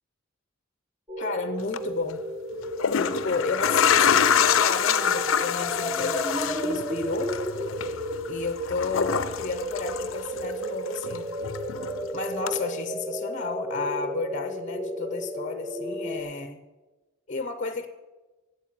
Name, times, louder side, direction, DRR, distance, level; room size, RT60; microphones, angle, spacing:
sound 1, 1.1-16.2, equal, 15° right, 1.1 m, -33 dB
voice 1, 1.2-2.3 3.0-7.4 8.3-11.3 12.1-16.6 17.3-17.9, left 4 dB, 35° left, 10 dB, 0.6 m, -32 dB
sound 2, 1.6-1.8 2.6-10.7 11.0-12.0 12.5-12.6, left 8 dB, 80° left, 0.5 m, -26 dB
8.5 x 7.9 x 9.0 m, 1.2 s
head